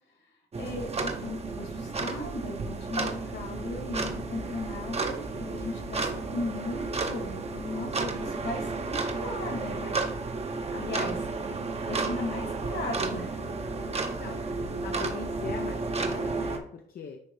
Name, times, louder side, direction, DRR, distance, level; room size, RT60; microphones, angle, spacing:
voice 1, 0.2-10.0 10.7-11.2 11.9-13.6, left 2 dB, 70° left, 0 dB, 2.4 m, -37 dB
sound 1, 0.5-16.6, right 3 dB, 30° right, 0.9 m, -32 dB
voice 2, 14.8-17.2, left 6 dB, 50° left, 3 dB, 0.7 m, -40 dB
9.8 x 3.3 x 3.2 m, 0.64 s
cardioid pair, 90°, 20 cm